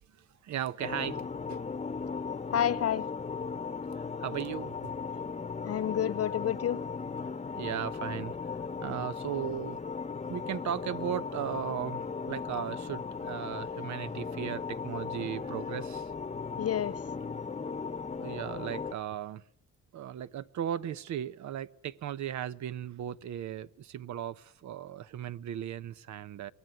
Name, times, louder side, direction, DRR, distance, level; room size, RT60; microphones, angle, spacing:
voice 1, 0.4-1.6 4.2-4.9 7.6-8.3 8.8-9.8 10.3-16.1 18.2-19.4 19.9-26.5, right 10 dB, 70° right, 0.9 m, -36 dB
sound 1, 0.8-18.9, left 5 dB, 20° left, 1.0 m, -37 dB
voice 2, 2.5-3.1 5.6-6.8 16.6-17.0, left 10 dB, 55° left, 1.1 m, -29 dB
24.5 x 19.0 x 9.4 m
cardioid pair, 90°, 30 cm